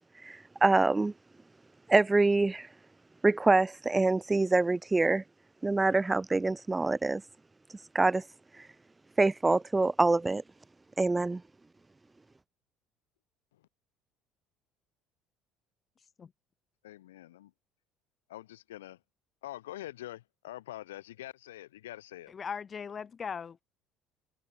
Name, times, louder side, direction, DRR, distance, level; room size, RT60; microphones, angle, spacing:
voice 1, 0.2-1.1 1.9-2.7 3.2-5.2 5.6-7.2 7.9-8.2 9.2-10.4 11.0-11.4, right 3 dB, 15° right, 0.4 m, -25 dB
voice 2, 16.8-17.5 18.3-19.0 19.4-22.3, left 14 dB, 80° left, 5.6 m, -45 dB
voice 3, 22.3-23.6, left 6 dB, 35° left, 1.8 m, -38 dB
hypercardioid pair, 60°, 0 cm